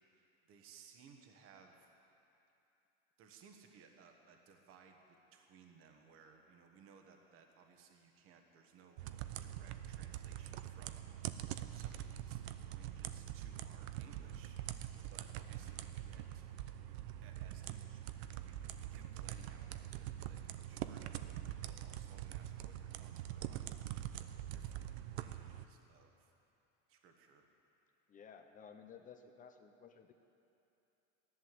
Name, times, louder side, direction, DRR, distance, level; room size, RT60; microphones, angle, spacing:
voice 1, 0.5-1.9 3.2-12.4 12.7-14.6 15.1-16.5 16.8-16.9 17.2-23.7 24.2-26.3 26.9-27.5, right 6 dB, 40° right, 3 dB, 1.4 m, -62 dB
sound 1, 9.0-25.6, right 12 dB, 75° right, 0.8 m, -44 dB
voice 2, 28.1-30.1, left 6 dB, 25° left, 6 dB, 0.7 m, -56 dB
14.5 x 11.0 x 7.7 m, 2.8 s
supercardioid pair, 145°, 32 cm